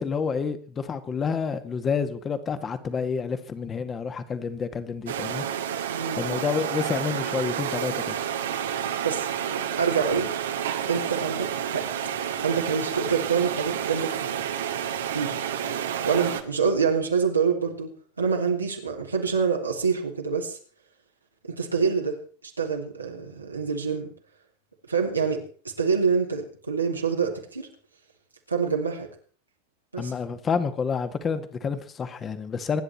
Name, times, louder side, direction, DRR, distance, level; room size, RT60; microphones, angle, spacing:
voice 1, 0.0-5.5 6.1-8.2 30.0-32.8, left 5 dB, 25° left, 2.1 m, -29 dB
sound 1, 5.1-16.4, right 9 dB, 70° right, 1.9 m, -30 dB
voice 2, 9.8-10.3 10.9-11.8 12.4-14.4 15.1-15.4 16.0-17.9 18.2-20.6 21.4-22.2 22.6-24.1 24.9-25.4 25.8-27.7 28.5-29.1 29.9-30.1, right 5 dB, 90° right, 3.1 m, -26 dB
26.0 x 10.0 x 4.4 m
figure-of-eight pair, 85°, 0 cm